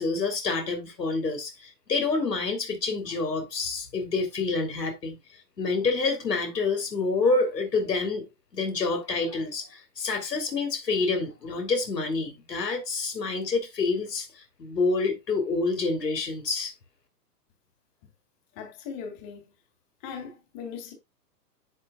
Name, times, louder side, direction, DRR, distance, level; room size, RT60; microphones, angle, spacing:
voice 1, 0.0-5.1 5.6-8.2 8.5-14.3 14.6-16.7, left 3 dB, 80° left, 3.2 m, -27 dB
voice 2, 18.5-19.5 20.0-20.9, left 6 dB, 35° left, 3.3 m, -39 dB
10.5 x 8.3 x 2.3 m
hypercardioid pair, 125°, 48 cm